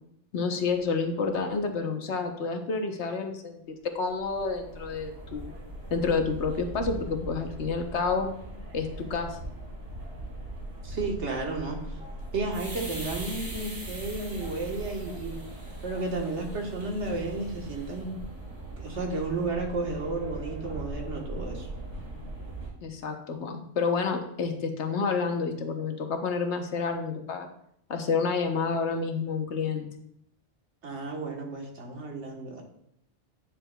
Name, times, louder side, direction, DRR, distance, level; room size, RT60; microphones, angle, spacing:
voice 1, 0.3-3.6 3.9-5.5 5.9-8.3 8.7-9.4 22.8-27.5 27.9-29.9, left 4 dB, 70° left, 5 dB, 1.1 m, -29 dB
sound 1, 4.0-22.7, right 1 dB, 50° right, 2.1 m, -39 dB
voice 2, 10.8-11.8 12.3-15.4 15.8-18.2 18.8-21.7 30.8-32.6, right 3 dB, 75° right, 1 dB, 1.5 m, -32 dB
9.2 x 6.3 x 2.2 m, 0.73 s
omnidirectional pair, 1.2 m